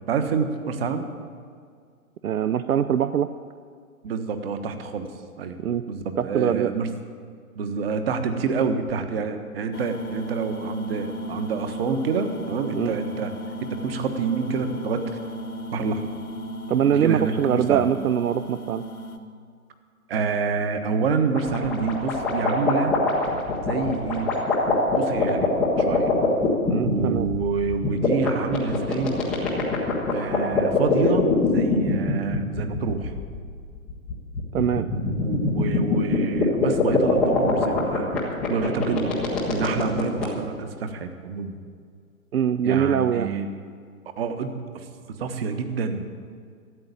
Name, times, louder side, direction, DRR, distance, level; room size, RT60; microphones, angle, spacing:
voice 1, 0.1-1.1 4.0-5.1 5.4-5.6 5.9-6.9 7.5-13.3 13.6-15.1 15.7-16.1 16.9-17.9 20.1-22.9 23.6-24.3 24.9-26.1 26.8-29.2 30.1-33.1 35.0-38.2 38.5-39.1 39.5-41.6 42.6-43.5 44.2-44.9 45.2-46.0, right 5 dB, 45° right, 8 dB, 1.4 m, -27 dB
voice 2, 2.2-3.3 5.6-5.8 6.2-6.7 12.7-13.0 16.7-18.8 26.6-27.3 34.5-34.9 42.3-43.3, right 9 dB, 75° right, 12 dB, 0.7 m, -23 dB
sound 1, 9.7-19.2, equal, 90° left, 1.7 m, -35 dB
sound 2, 21.3-40.2, left 4 dB, ahead, 0.5 m, -24 dB
13.0 x 8.1 x 9.8 m, 2.1 s
hypercardioid pair, 145°, 43 cm